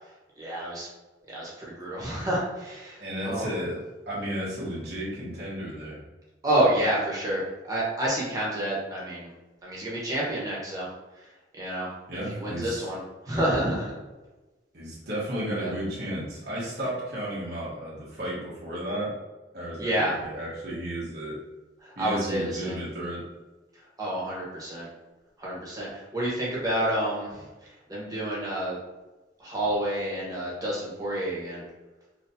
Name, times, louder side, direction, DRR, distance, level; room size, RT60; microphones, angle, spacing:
voice 1, 0.4-0.9 1.3-3.5 6.4-7.4 7.7-9.3 9.6-10.9 11.6-11.9 12.3-13.0 13.2-13.9 15.6-15.7 19.8-20.2 21.8-22.8 24.0-24.9 25.4-27.4 27.9-28.8 29.4-31.6, right 1 dB, 20° right, -6 dB, 1.2 m, -29 dB
voice 2, 3.0-3.8 4.1-6.0 6.5-6.7 12.1-12.9 14.7-19.2 19.5-21.4 22.0-23.2, equal, 60° right, -7 dB, 1.3 m, -33 dB
4.1 x 3.0 x 2.7 m, 1.2 s
head